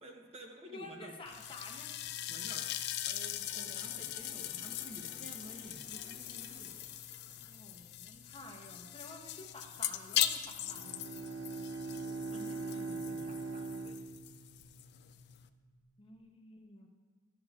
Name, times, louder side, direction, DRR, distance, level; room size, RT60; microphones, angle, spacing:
voice 1, 0.0-1.2 2.3-2.7 3.0-6.9 11.9-14.0, right 1 dB, 30° right, 1 dB, 0.8 m, -51 dB
voice 2, 0.7-1.9 7.2-11.0 16.0-16.9, left 2 dB, 25° left, 1 dB, 0.7 m, -51 dB
sound 1, 1.3-15.5, left 12 dB, 55° left, 0.3 m, -40 dB
Water / Toilet flush, 3.1-8.4, right 1 dB, 70° right, 2.0 m, -59 dB
Bowed string instrument, 10.5-14.9, right 3 dB, 85° right, 0.4 m, -41 dB
13.0 x 7.0 x 2.4 m, 1.4 s
head